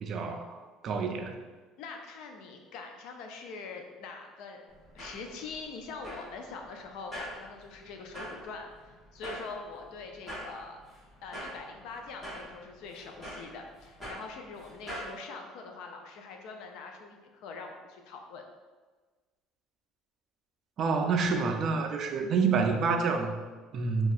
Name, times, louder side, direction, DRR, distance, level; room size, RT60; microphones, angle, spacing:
voice 1, 0.0-1.4 20.8-24.1, right 4 dB, 40° right, 5 dB, 0.3 m, -28 dB
voice 2, 1.8-4.6 4.9-10.8 11.2-18.4, left 4 dB, 65° left, 3 dB, 0.4 m, -43 dB
sound 1, 4.7-15.1, equal, 20° left, 1.1 m, -45 dB
2.7 x 2.3 x 4.0 m, 1.4 s
cardioid pair, 160°, 0 cm